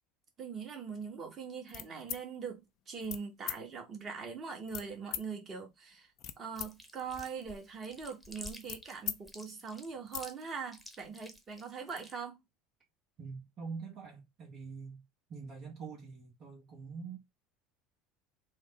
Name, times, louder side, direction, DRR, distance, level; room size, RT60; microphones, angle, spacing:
voice 1, 0.4-6.1 6.4-12.4, right 5 dB, 35° right, 1.3 m, -42 dB
sound 1, 1.7-2.2 3.0-3.2 3.5-3.6 4.7-5.3 5.9-6.7 7.0-9.2 9.5-9.6 9.9-10.3, left 11 dB, 55° left, 0.5 m, -41 dB
Chewing mastication, 6.6-12.1, left 1 dB, ahead, 1.0 m, -50 dB
voice 2, 13.2-15.0 15.3-17.2, right 5 dB, 50° right, 1.0 m, -45 dB
3.5 x 2.1 x 4.0 m
hypercardioid pair, 75°, 0 cm